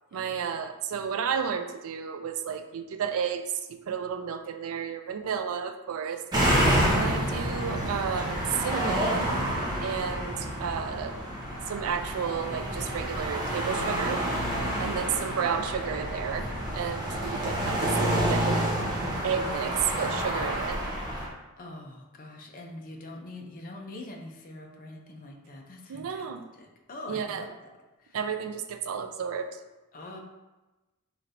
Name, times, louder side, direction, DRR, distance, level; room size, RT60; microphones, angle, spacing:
voice 1, 0.1-6.2 6.9-9.3 9.8-11.2 11.7-14.2 14.8-18.8 19.2-20.8 25.9-26.4 27.1-27.5 28.1-29.6, right 7 dB, 65° right, 7 dB, 0.4 m, -32 dB
sound 1, 6.3-21.3, right 1 dB, 20° right, 0.7 m, -28 dB
voice 2, 21.6-27.5 28.0-28.2 29.9-30.2, left 2 dB, 40° left, 1 dB, 0.5 m, -44 dB
4.0 x 3.1 x 2.6 m, 1.1 s
head